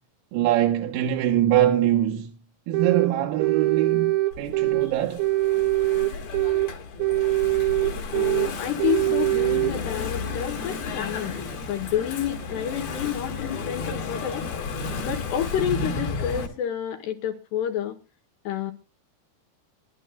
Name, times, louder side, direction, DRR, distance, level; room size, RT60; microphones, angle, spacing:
voice 1, 0.3-2.4 2.7-5.3, right 12 dB, 85° right, 3.8 m, -23 dB
sound 1, 2.7-3.1 3.4-4.9 5.2-6.7 7.0-8.5 8.8-9.7, right 17 dB, 70° right, 2.8 m, -23 dB
Engine / Mechanisms, 4.3-16.5, left 4 dB, 55° left, 3.3 m, -33 dB
voice 2, 8.1-14.5 15.0-18.0 18.4-18.7, left 10 dB, 75° left, 2.6 m, -29 dB
24.0 x 11.5 x 2.3 m
omnidirectional pair, 5.9 m